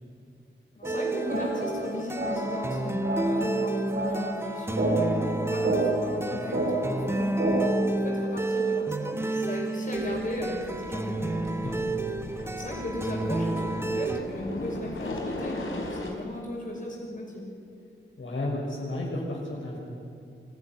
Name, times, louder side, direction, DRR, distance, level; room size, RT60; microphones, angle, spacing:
voice 1, 0.7-7.4 7.6-11.8 12.2-17.5, left 1 dB, 40° left, -3 dB, 6.3 m, -37 dB
sound 1, 0.8-14.2, right 2 dB, 10° right, 1.3 m, -30 dB
sound 2, 0.8-7.8, right 1 dB, 75° right, 5.9 m, -30 dB
sound 3, 9.9-16.1, left 2 dB, 85° left, 4.4 m, -38 dB
voice 2, 18.2-19.8, left 1 dB, 70° left, -3 dB, 6.3 m, -32 dB
24.5 x 15.0 x 10.0 m, 2.5 s
wide cardioid pair, 95°, 20 cm